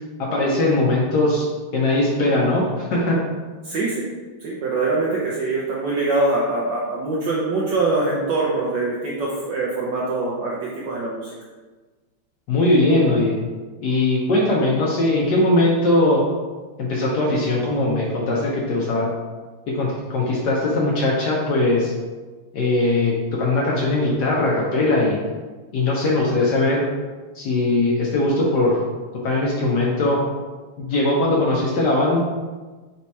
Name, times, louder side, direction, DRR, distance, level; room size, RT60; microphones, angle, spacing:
voice 1, 0.2-1.5 1.7-3.2 12.5-13.4 13.8-16.2 16.8-19.1 19.8-21.9 22.5-25.2 25.7-26.8 27.3-28.8 29.2-30.2 30.9-32.2, left 2 dB, 65° left, -4 dB, 1.1 m, -20 dB
voice 2, 3.6-4.1 4.4-11.3, right 3 dB, 70° right, -5 dB, 1.2 m, -23 dB
4.2 x 2.7 x 4.5 m, 1.3 s
omnidirectional pair, 2.3 m